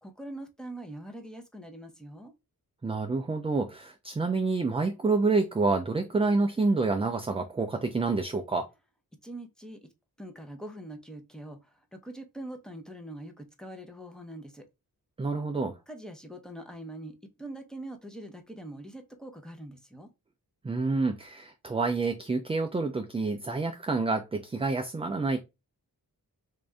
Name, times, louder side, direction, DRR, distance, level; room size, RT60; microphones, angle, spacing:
voice 1, 0.0-2.3 9.2-9.9 10.2-14.6 15.9-20.1, right 1 dB, ahead, 0.7 m, -43 dB
voice 2, 2.8-8.7 15.2-15.8 20.6-25.4, right 3 dB, 15° right, 0.3 m, -28 dB
3.6 x 2.6 x 3.2 m
wide cardioid pair, 115°, 37 cm